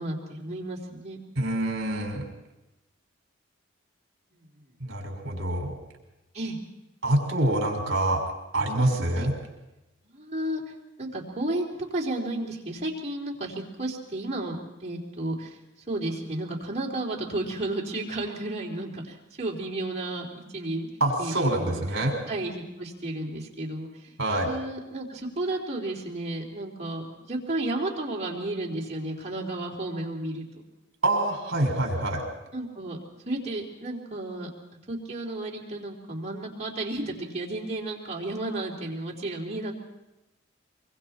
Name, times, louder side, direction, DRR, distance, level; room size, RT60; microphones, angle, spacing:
voice 1, 0.0-1.2 4.3-4.4 6.3-6.6 9.2-9.3 10.0-10.6 11.0-11.7 11.9-15.6 15.9-20.9 21.2-21.8 22.3-24.1 24.4-30.4 32.5-33.0 33.3-34.5 34.9-39.7, right 1 dB, 35° right, -3 dB, 3.7 m, -32 dB
voice 2, 1.4-2.3 4.8-5.7 7.0-8.2 8.5-9.3 21.0-22.2 24.2-24.5 31.0-32.2, right 1 dB, 60° right, 1 dB, 6.1 m, -26 dB
24.5 x 24.0 x 4.5 m, 0.97 s
head